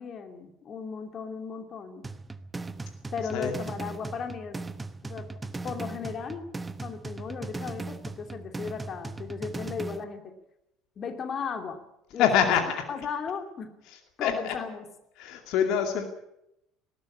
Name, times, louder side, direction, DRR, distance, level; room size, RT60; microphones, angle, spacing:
voice 1, 0.0-2.1 3.1-4.6 5.0-6.5 6.8-10.3 11.0-11.8 12.1-12.5 12.9-13.7 14.2-14.8, left 6 dB, 35° left, 6 dB, 2.7 m, -36 dB
sound 1, 2.0-10.0, right 3 dB, 15° right, 1.1 m, -38 dB
voice 2, 12.2-12.6 13.9-14.5 15.2-16.0, left 8 dB, 55° left, 5 dB, 2.4 m, -25 dB
19.5 x 16.0 x 8.6 m, 0.84 s
figure-of-eight pair, 65°, 0 cm